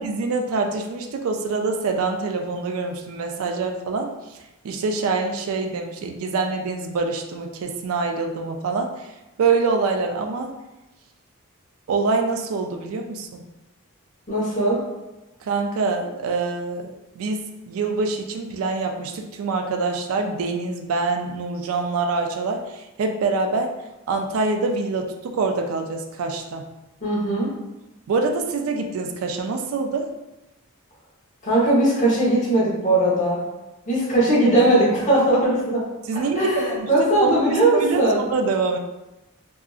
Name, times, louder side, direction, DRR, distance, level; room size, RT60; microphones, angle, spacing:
voice 1, 0.0-9.1 9.4-10.5 11.9-13.4 15.4-23.7 24.1-26.7 28.1-30.1 36.1-36.9 37.2-38.8, right 4 dB, 70° right, 4 dB, 0.3 m, -25 dB
voice 2, 14.3-14.8 27.0-27.5 31.4-33.4 33.9-35.8 36.4-38.2, right 1 dB, 35° left, -7 dB, 0.9 m, -19 dB
2.7 x 2.4 x 2.3 m, 1.0 s
head